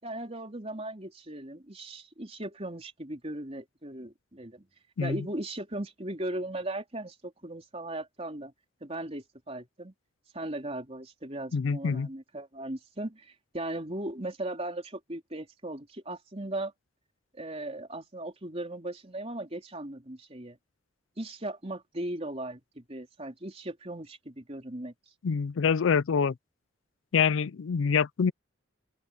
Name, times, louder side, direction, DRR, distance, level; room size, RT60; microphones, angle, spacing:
voice 1, 0.0-4.7 5.0-8.5 8.8-9.9 10.3-16.7 17.3-20.6 21.2-24.9, right 1 dB, 30° right, 3.9 m, -38 dB
voice 2, 11.5-12.1 25.2-26.3 27.1-28.3, left 6 dB, 85° left, 0.4 m, -26 dB
open air
head